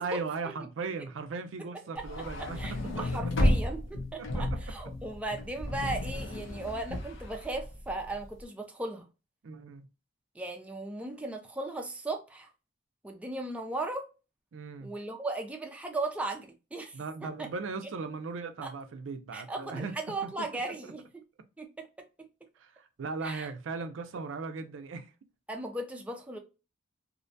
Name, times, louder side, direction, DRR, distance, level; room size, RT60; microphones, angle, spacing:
voice 1, 0.0-3.2 4.2-4.7 9.4-9.9 14.5-14.9 16.9-20.0 20.2-20.9 22.6-25.1, right 4 dB, 75° right, 0.4 m, -38 dB
sound 1, 2.0-8.3, left 1 dB, 70° left, 0.6 m, -32 dB
voice 2, 2.4-9.0 10.4-12.5 13.0-14.1 14.8-17.3 18.6-18.7 19.3-21.2 21.6-21.9 23.2-23.5 25.5-26.4, right 2 dB, 5° right, 0.3 m, -37 dB
2.6 x 2.1 x 2.5 m
head